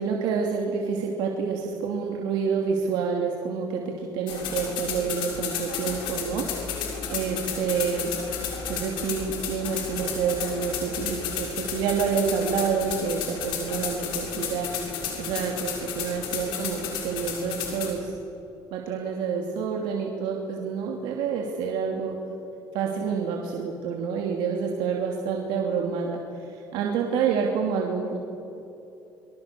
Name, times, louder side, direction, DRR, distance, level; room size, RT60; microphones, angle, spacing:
voice 1, 0.0-6.7 7.1-8.1 8.7-18.1 18.7-22.2 22.7-28.2, right 6 dB, 80° right, 0 dB, 2.8 m, -28 dB
sound 1, 4.3-17.9, left 6 dB, 80° left, 6.5 m, -32 dB
26.5 x 24.5 x 6.9 m, 2.9 s
cardioid pair, 100°, 8 cm